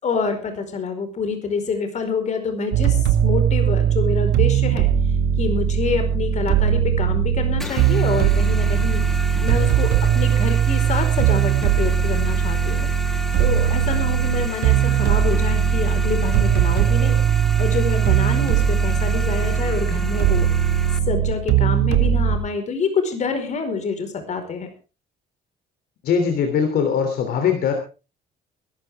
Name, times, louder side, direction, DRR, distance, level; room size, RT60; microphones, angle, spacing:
voice 1, 0.0-4.9 5.4-9.0 9.4-12.9 13.4-20.5 21.1-24.7, left 5 dB, 45° left, 7 dB, 4.8 m, -27 dB
sound 1, 2.7-22.4, right 9 dB, 90° right, 1.9 m, -19 dB
sound 2, 7.6-21.0, equal, ahead, 1.6 m, -34 dB
voice 2, 26.0-27.7, left 7 dB, 65° left, 5 dB, 3.2 m, -21 dB
21.0 x 13.0 x 3.6 m, 0.33 s
cardioid pair, 110°, 17 cm